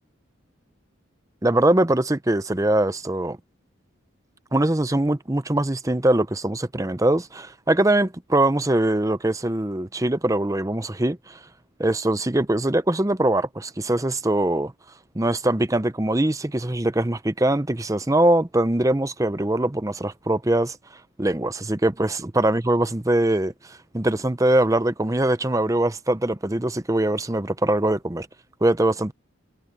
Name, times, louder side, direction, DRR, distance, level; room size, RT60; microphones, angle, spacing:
voice 1, 1.4-3.4 4.5-11.4 11.8-14.7 15.1-20.8 21.2-28.3 28.6-29.1, right 1 dB, 15° right, 0.6 m, -22 dB
head